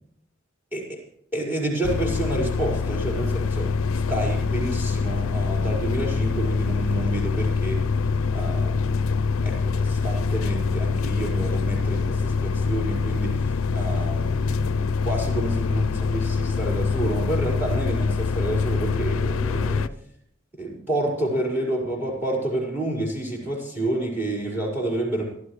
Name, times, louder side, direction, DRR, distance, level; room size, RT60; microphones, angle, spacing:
voice 1, 1.3-3.7 4.1-7.8 8.3-8.9 9.4-19.9 20.5-25.2, right 1 dB, 10° right, -1 dB, 5.2 m, -29 dB
sound 1, 1.8-19.9, left 4 dB, 85° left, 0.5 m, -25 dB
24.5 x 13.0 x 3.3 m, 0.70 s
head